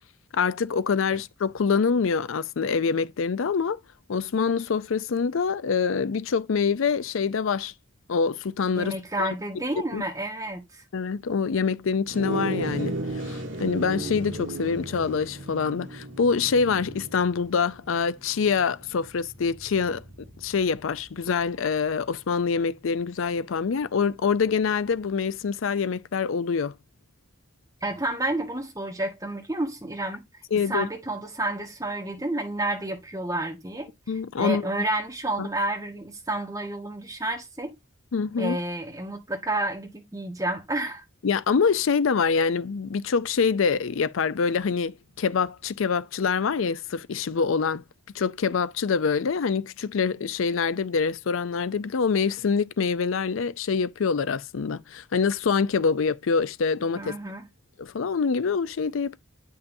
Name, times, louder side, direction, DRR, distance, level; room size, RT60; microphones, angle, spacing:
voice 1, 0.3-3.8 4.1-7.7 8.1-9.3 9.9-10.0 10.9-13.0 13.2-20.0 20.4-26.7 30.5-30.9 34.1-34.7 35.4-35.5 38.1-38.6 41.2-47.8 48.1-57.1 57.8-59.2, left 5 dB, 80° left, 0.5 m, -25 dB
voice 2, 8.7-10.8 27.8-30.2 30.7-33.9 34.4-37.7 38.4-41.0 56.9-57.5, right 2 dB, 15° right, 1.5 m, -30 dB
sound 1, 12.1-21.7, right 2 dB, 70° right, 1.7 m, -36 dB
8.2 x 5.5 x 2.7 m
head